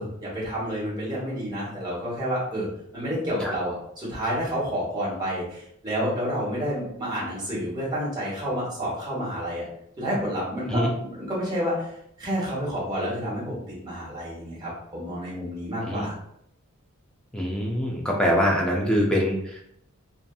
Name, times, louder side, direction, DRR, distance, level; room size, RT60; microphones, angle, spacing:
voice 1, 0.0-2.7 2.9-9.6 10.0-10.9 11.2-11.9 12.2-16.1, equal, 20° right, -7 dB, 1.0 m, -29 dB
voice 2, 17.3-19.6, equal, 5° left, -2 dB, 0.3 m, -24 dB
2.7 x 2.4 x 2.3 m, 0.72 s
head